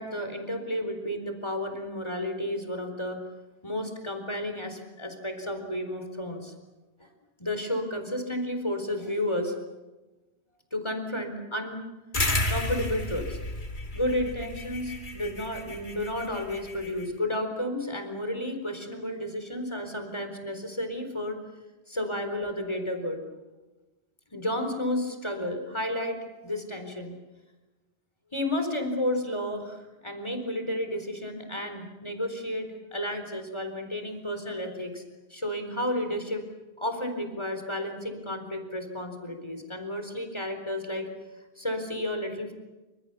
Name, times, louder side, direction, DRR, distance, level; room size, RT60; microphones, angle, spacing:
voice 1, 0.0-3.2 3.6-6.5 7.0-7.1 7.4-9.6 10.7-11.8 12.5-13.4 13.9-21.4 21.9-23.2 24.3-27.1 28.3-35.0 35.3-36.4 36.8-41.1 41.6-42.5, left 1 dB, 25° left, 6 dB, 4.3 m, -32 dB
sound 1, 12.1-17.0, left 1 dB, 50° left, 2.9 m, -32 dB
28.5 x 26.0 x 6.9 m, 1.1 s
omnidirectional pair, 1.1 m